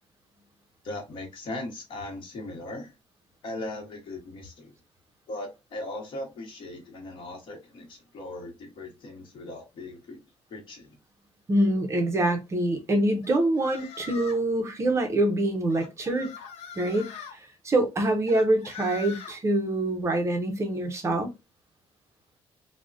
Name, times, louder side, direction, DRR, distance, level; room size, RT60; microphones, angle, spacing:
voice 1, 0.8-2.9 3.4-4.7 5.3-10.2 10.5-11.0, left 2 dB, 50° left, 1.0 m, -38 dB
voice 2, 11.5-16.3 16.8-21.3, right 1 dB, 25° right, 0.5 m, -25 dB
sound 1, 13.2-14.5 15.7-17.3 18.3-19.4, left 7 dB, 80° left, 0.7 m, -42 dB
3.5 x 2.1 x 2.4 m
cardioid pair, 170°, 11 cm